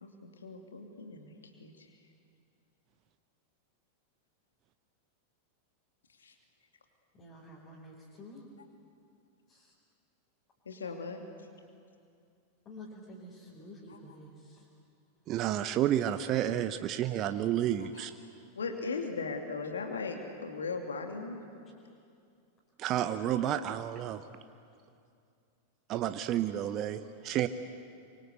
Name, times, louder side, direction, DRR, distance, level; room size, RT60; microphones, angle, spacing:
voice 1, 0.0-1.9 6.2-6.3 10.7-11.2 17.9-18.0 18.6-21.4, left 4 dB, 70° left, 3 dB, 2.5 m, -38 dB
voice 2, 7.2-8.4 9.5-9.7 12.7-14.7, left 1 dB, 30° left, -4 dB, 5.2 m, -50 dB
voice 3, 15.3-18.1 22.8-24.2 25.9-27.5, right 11 dB, 35° right, 10 dB, 0.9 m, -30 dB
26.5 x 24.0 x 8.2 m, 2.4 s
figure-of-eight pair, 90°, 0 cm